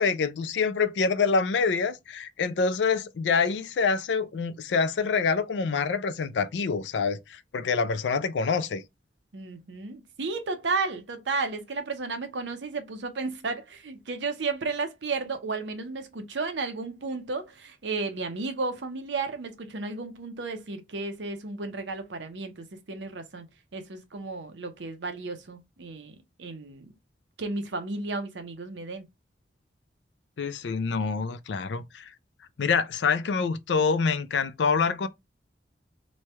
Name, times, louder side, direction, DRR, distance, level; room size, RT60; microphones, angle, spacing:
voice 1, 0.0-8.8 30.4-32.1 32.6-35.1, left 5 dB, 75° left, 0.4 m, -26 dB
voice 2, 9.3-23.5 23.7-26.9 27.4-29.1, right 3 dB, 85° right, 0.7 m, -33 dB
3.1 x 2.3 x 4.1 m
head